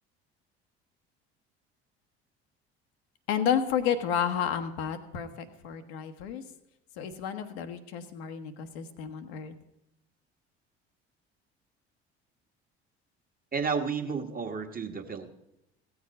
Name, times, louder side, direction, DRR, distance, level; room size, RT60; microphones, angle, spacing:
voice 1, 3.3-6.4 7.0-9.5, left 8 dB, 70° left, 8 dB, 1.1 m, -31 dB
voice 2, 13.5-15.3, right 5 dB, 25° right, 4 dB, 1.4 m, -32 dB
16.0 x 7.2 x 5.3 m, 0.87 s
hypercardioid pair, 60°, 32 cm